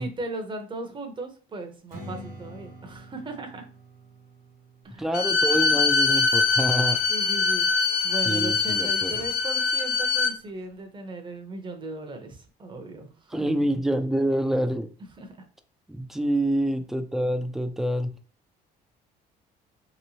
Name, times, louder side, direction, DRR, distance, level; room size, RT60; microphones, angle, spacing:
voice 1, 0.0-3.7 4.8-5.1 7.1-13.5 15.2-15.3, right 2 dB, 30° right, 5 dB, 0.8 m, -37 dB
Strum, 1.9-7.1, equal, 60° right, 1.2 m, -46 dB
voice 2, 5.0-7.0 8.2-9.3 13.3-14.9 15.9-18.1, right 1 dB, ahead, 7 dB, 0.4 m, -26 dB
Bowed string instrument, 5.1-10.4, left 4 dB, 65° left, 0.6 m, -23 dB
3.0 x 3.0 x 2.8 m, 0.38 s
cardioid pair, 110°, 17 cm